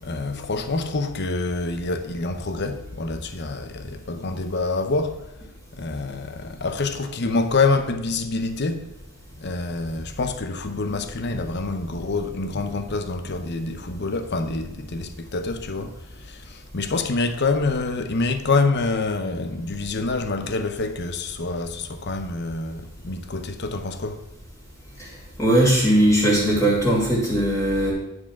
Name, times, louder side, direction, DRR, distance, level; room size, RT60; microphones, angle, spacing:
voice 1, 0.0-5.2 5.7-8.9 9.4-15.9 16.2-24.2, left 3 dB, 50° left, 0.7 m, -26 dB
voice 2, 25.4-27.9, right 1 dB, 15° left, 2.6 m, -19 dB
9.7 x 4.8 x 6.0 m
head